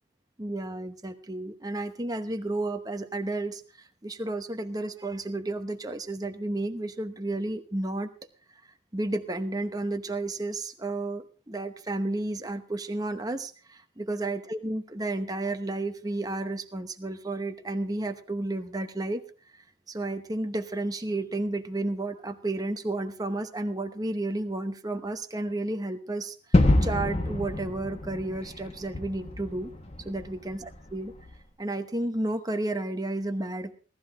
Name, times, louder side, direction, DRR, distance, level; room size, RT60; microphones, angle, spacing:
voice 1, 0.4-8.1 8.5-8.6 8.9-19.2 19.5-29.7 30.0-31.1 31.6-33.7, right 2 dB, 20° right, 7 dB, 0.9 m, -32 dB
Gunshot gunfire / Fireworks / Boom, 26.5-31.3, left 1 dB, 30° left, 1.5 m, -27 dB
17.5 x 13.0 x 3.7 m, 0.37 s
head